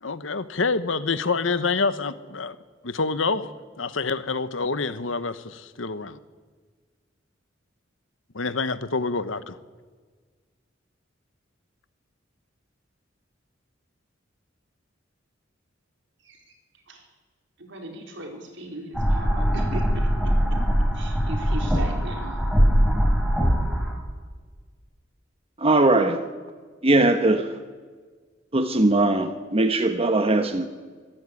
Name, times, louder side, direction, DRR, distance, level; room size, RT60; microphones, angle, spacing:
voice 1, 0.0-2.5 2.8-3.5 3.8-6.2 8.3-9.6, left 4 dB, 75° left, 1.2 m, -27 dB
voice 2, 16.2-16.6 16.9-17.1 17.6-20.6 20.9-22.4, right 1 dB, 65° right, 4.4 m, -38 dB
sound 1, 18.9-23.9, equal, ahead, 4.3 m, -22 dB
voice 3, 25.6-26.3 26.8-27.6 28.5-30.6, right 2 dB, 30° right, 1.2 m, -20 dB
25.5 x 13.5 x 9.8 m
head